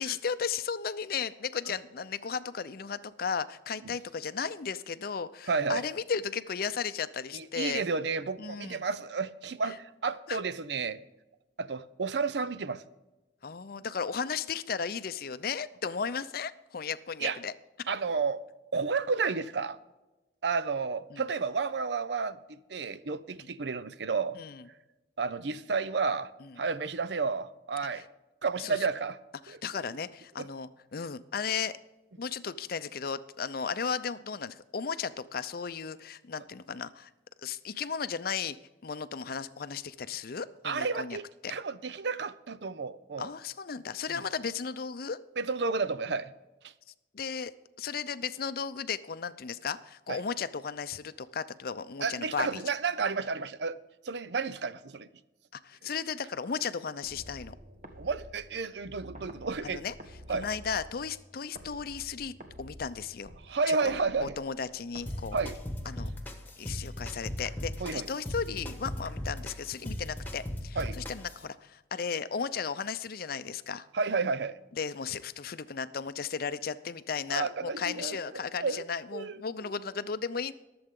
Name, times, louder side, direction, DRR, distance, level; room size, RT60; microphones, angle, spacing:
voice 1, 0.0-7.8 8.4-8.8 9.6-9.8 10.3-10.4 13.4-17.5 21.1-21.2 23.4-23.5 24.4-24.6 26.4-26.5 28.6-28.8 29.4-31.8 32.2-37.1 37.4-38.6 38.8-41.2 41.4-41.5 43.2-45.2 47.1-47.5 47.8-52.6 55.6-57.6 59.6-59.9 60.3-63.3 63.7-63.8 64.2-65.4 65.9-66.1 66.6-73.8 74.8-80.5, left 6 dB, 55° left, 0.5 m, -35 dB
voice 2, 5.5-5.9 7.3-11.0 11.6-12.8 17.2-17.4 17.9-18.4 18.7-19.8 20.4-24.4 25.2-26.3 26.6-28.0 28.4-29.2 29.5-29.8 30.4-30.5 40.6-43.3 44.1-44.2 45.4-46.3 46.6-46.7 50.1-50.2 52.0-53.8 54.0-55.1 55.8-55.9 58.0-59.8 60.3-60.5 63.5-64.3 65.3-65.6 67.8-68.1 70.8-71.0 73.9-74.6 77.3-78.8 79.1-79.4, right 4 dB, 70° right, 0.6 m, -31 dB
sound 1, 57.0-66.1, equal, 45° right, 1.4 m, -50 dB
sound 2, 65.1-71.4, left 1 dB, 10° left, 1.4 m, -38 dB
22.5 x 7.8 x 3.7 m
head